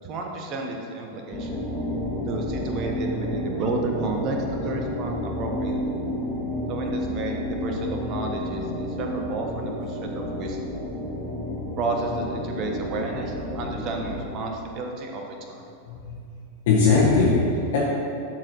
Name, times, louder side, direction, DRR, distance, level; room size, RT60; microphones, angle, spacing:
voice 1, 0.0-1.7 2.3-6.0 6.7-10.8 11.8-15.6, right 3 dB, 35° right, 2 dB, 1.2 m, -31 dB
sound 1, 1.3-14.4, left 1 dB, 20° left, 1.9 m, -31 dB
voice 2, 15.9-16.2 16.7-17.8, left 4 dB, 55° left, -8 dB, 1.6 m, -20 dB
11.0 x 4.7 x 4.8 m, 2.5 s
figure-of-eight pair, 90°, 0 cm